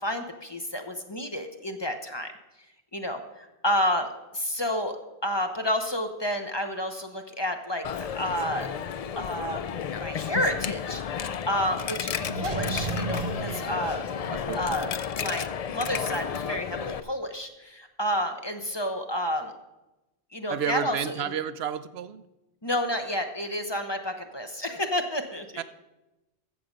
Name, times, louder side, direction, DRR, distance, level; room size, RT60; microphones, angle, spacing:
voice 1, 0.0-2.3 2.9-5.0 5.2-7.8 8.2-8.7 9.2-9.6 9.9-14.0 14.6-14.9 15.2-19.5 20.3-21.3 22.6-25.6, equal, 25° left, 5 dB, 0.8 m, -30 dB
Coin (dropping), 7.8-17.0, left 7 dB, 60° left, 0.4 m, -32 dB
sound 1, 12.1-15.0 15.3-15.4, right 3 dB, 45° right, 0.7 m, -34 dB
voice 2, 20.5-22.2 25.6-25.7, right 8 dB, 75° right, 13 dB, 0.8 m, -31 dB
14.5 x 7.1 x 5.2 m, 1.0 s
omnidirectional pair, 1.1 m